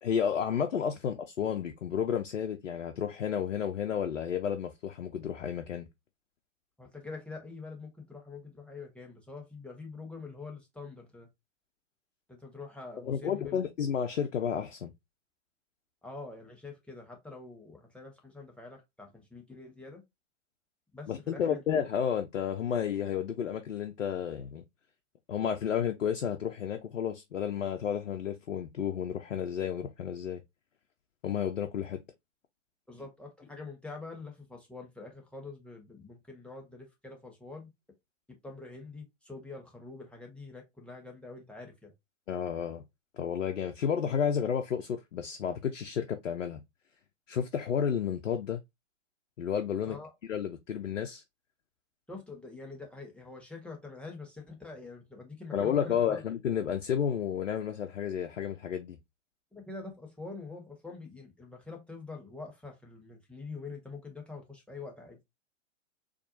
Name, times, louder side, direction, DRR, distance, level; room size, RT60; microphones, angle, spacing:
voice 1, 0.0-5.9 13.0-14.9 21.1-24.6 25.3-30.4 31.2-32.0 42.3-42.8 43.1-46.6 47.3-48.6 49.4-50.0 50.2-51.2 55.5-59.0, left 8 dB, 70° left, 0.7 m, -31 dB
voice 2, 6.8-11.3 12.3-13.6 16.0-20.0 20.9-21.6 32.9-37.7 38.4-41.9 49.9-50.1 52.1-56.2 59.5-65.2, left 3 dB, 5° left, 0.9 m, -45 dB
4.3 x 2.6 x 2.6 m
figure-of-eight pair, 110°, 37 cm